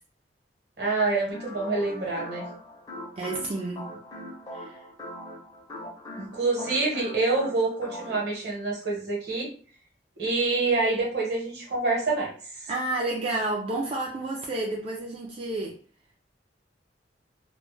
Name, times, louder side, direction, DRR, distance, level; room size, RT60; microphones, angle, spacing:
voice 1, 0.8-2.4 6.2-9.5 10.2-12.7, right 3 dB, 65° right, -2 dB, 1.0 m, -27 dB
sound 1, 1.3-8.3, left 1 dB, 20° left, 0.5 m, -41 dB
voice 2, 3.2-3.9 4.5-4.9 12.7-15.8, right 2 dB, 35° right, -2 dB, 0.3 m, -30 dB
2.2 x 2.1 x 3.0 m, 0.43 s
head